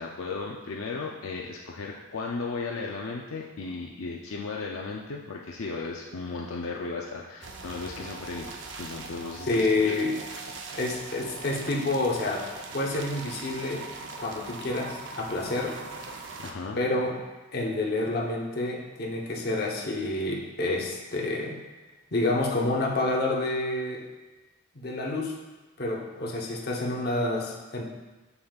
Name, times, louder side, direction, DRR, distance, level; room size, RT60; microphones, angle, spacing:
voice 1, 0.0-10.0 16.4-16.8, left 4 dB, 80° left, -1 dB, 0.5 m, -35 dB
sound 1, 7.4-16.5, right 3 dB, 60° right, 0.6 m, -41 dB
voice 2, 9.5-10.2 10.8-12.5 12.7-13.9 14.2-15.8 16.8-17.2 17.5-21.6 22.1-24.0 24.7-25.3 25.8-27.8, left 2 dB, 50° left, -1 dB, 0.9 m, -28 dB
6.9 x 6.8 x 2.4 m, 1.2 s
head